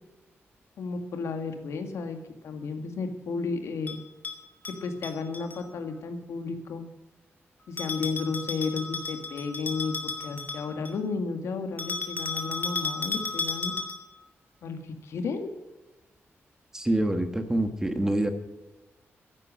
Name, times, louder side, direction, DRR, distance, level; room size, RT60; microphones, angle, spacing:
voice 1, 0.8-2.2 2.4-4.0 4.8-6.8 7.7-9.9 10.2-13.7 14.6-15.5, left 4 dB, 85° left, 7 dB, 1.9 m, -33 dB
Bell, 3.9-5.6 7.8-11.0 11.8-14.2, left 4 dB, 40° left, 2.4 m, -34 dB
voice 2, 16.7-18.3, right 1 dB, 10° right, 7 dB, 1.3 m, -26 dB
14.0 x 11.0 x 6.3 m, 1.1 s
wide cardioid pair, 160°, 5 cm